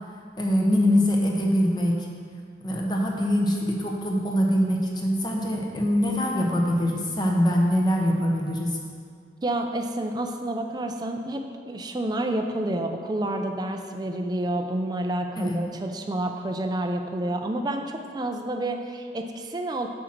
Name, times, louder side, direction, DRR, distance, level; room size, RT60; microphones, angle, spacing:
voice 1, 0.4-2.1 2.6-8.8 15.4-15.6, equal, 25° left, 0 dB, 1.0 m, -23 dB
voice 2, 9.4-19.9, right 1 dB, 25° right, 4 dB, 0.4 m, -29 dB
7.9 x 6.3 x 4.5 m, 2.1 s
head